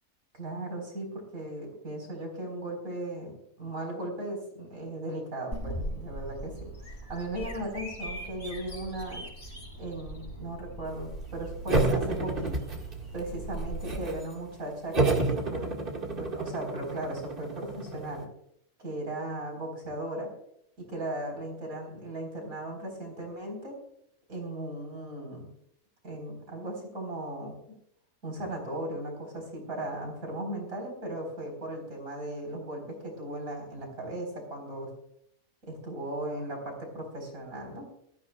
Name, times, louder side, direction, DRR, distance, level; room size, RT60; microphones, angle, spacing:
voice 1, 0.3-9.2 9.8-12.6 13.1-15.7 16.1-18.3 18.8-20.3 20.8-23.7 24.3-25.5 26.0-27.5 28.2-34.9 35.6-37.9, right 1 dB, 70° right, 1 dB, 4.7 m, -37 dB
Bird vocalization bird call bird song, 5.5-14.0, right 1 dB, 45° left, 5.1 m, -39 dB
sound 1, 11.7-13.2 13.5-14.3 14.9-18.2, right 3 dB, 35° right, 1.9 m, -30 dB
22.0 x 14.0 x 2.3 m, 0.72 s
omnidirectional pair, 1.5 m